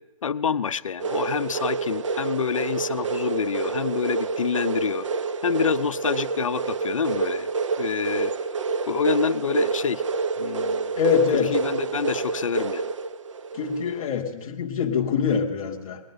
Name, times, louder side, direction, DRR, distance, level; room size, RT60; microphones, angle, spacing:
voice 1, 0.2-5.1 5.4-7.5 7.8-8.3 8.9-10.0 10.4-10.9 11.3-12.9, left 7 dB, 65° left, 15 dB, 0.5 m, -27 dB
sound 1, 1.0-14.1, right 4 dB, 60° right, 0.6 m, -28 dB
voice 2, 11.0-11.5 13.5-16.0, left 7 dB, 5° left, -4 dB, 0.4 m, -24 dB
19.5 x 10.5 x 4.0 m, 1.1 s
hypercardioid pair, 170°, 18 cm